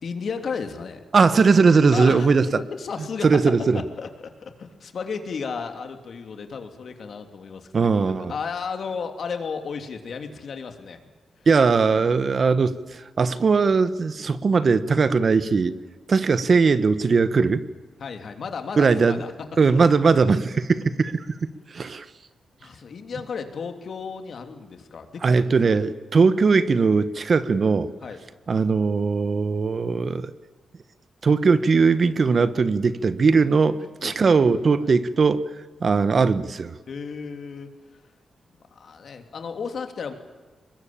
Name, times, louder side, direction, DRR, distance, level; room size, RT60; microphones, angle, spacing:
voice 1, 0.0-1.0 1.9-2.3 2.6-3.3 3.7-11.0 18.0-19.3 19.7-19.8 22.6-25.4 28.0-28.2 34.0-34.4 34.8-34.9 36.9-38.0 38.7-40.1, left 5 dB, 60° left, 6 dB, 3.0 m, -34 dB
voice 2, 1.1-2.5 3.2-3.8 7.7-8.3 11.5-15.7 16.1-17.6 18.8-19.2 19.6-21.2 21.7-22.1 25.2-27.9 28.5-30.3 31.2-35.4 35.8-36.7, right 4 dB, 45° right, 13 dB, 1.2 m, -19 dB
24.0 x 21.0 x 8.8 m, 1.3 s
cardioid pair, 100°, 0 cm